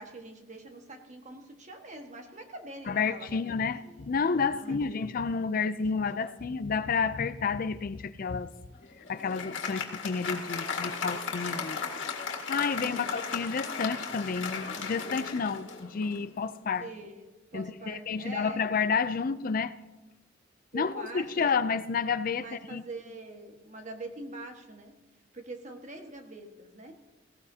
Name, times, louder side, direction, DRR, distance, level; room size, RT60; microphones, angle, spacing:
voice 1, 0.0-3.5 3.8-4.0 4.5-5.0 6.2-6.4 12.7-13.2 16.8-17.2 17.5-18.7 20.7-21.5 22.3-25.0 25.3-27.0, right 2 dB, 40° right, 4 dB, 1.5 m, -44 dB
voice 2, 2.9-8.5 9.0-11.9 12.3-16.9 17.5-19.7 20.7-22.8, left 5 dB, 50° left, 13 dB, 0.4 m, -30 dB
Applause, 8.7-16.3, left 5 dB, 80° left, 1.9 m, -36 dB
18.0 x 16.5 x 2.8 m, 1.1 s
head